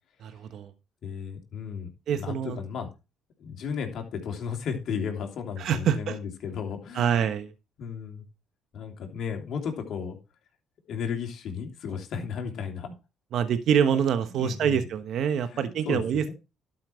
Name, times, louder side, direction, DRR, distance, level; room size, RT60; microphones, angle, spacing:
voice 1, 0.2-0.7 2.1-2.6 5.6-6.2 6.9-7.5 13.3-16.3, right 8 dB, 65° right, 10 dB, 1.2 m, -26 dB
voice 2, 1.0-2.9 3.4-7.3 7.8-8.2 8.7-10.2 10.9-12.9 13.8-14.0 14.3-14.9 15.4-16.3, left 6 dB, 65° left, 3 dB, 2.9 m, -34 dB
12.0 x 5.9 x 4.5 m, 0.27 s
supercardioid pair, 75°, 0 cm